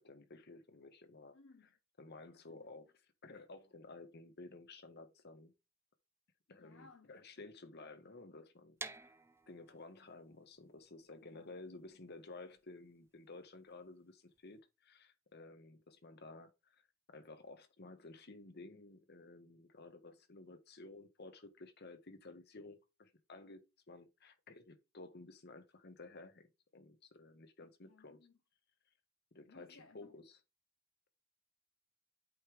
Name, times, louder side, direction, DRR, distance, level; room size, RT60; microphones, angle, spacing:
voice 1, 0.0-1.4 2.0-5.5 6.5-9.1 9.5-23.6 23.9-26.5 26.7-28.2 29.3-30.4, left 2 dB, 50° left, 1.3 m, -54 dB
voice 2, 1.3-1.7 2.5-2.7 6.5-7.2 11.2-11.6 27.6-28.3 29.5-30.1, left 3 dB, 65° left, 0.7 m, -62 dB
sound 1, 8.8-14.6, right 3 dB, 10° right, 0.5 m, -53 dB
8.4 x 3.3 x 4.8 m
head